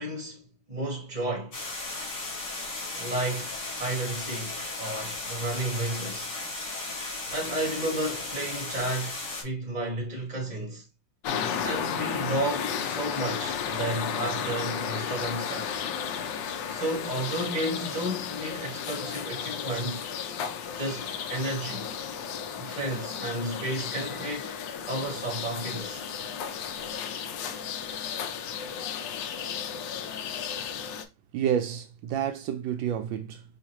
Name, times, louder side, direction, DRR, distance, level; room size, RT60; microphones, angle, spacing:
voice 1, 0.0-1.6 2.9-6.3 7.3-9.2 9.4-10.8 11.6-15.7 16.7-20.0 20.8-21.9 22.6-24.6 24.9-26.0, right 1 dB, 25° right, 1.8 m, -32 dB
sound 1, 1.5-9.4, left 2 dB, 55° left, 2.2 m, -35 dB
sound 2, 11.2-31.0, left 7 dB, 75° left, 1.2 m, -33 dB
voice 2, 31.3-33.4, right 9 dB, 80° right, 1.3 m, -29 dB
4.9 x 3.6 x 3.0 m
omnidirectional pair, 2.1 m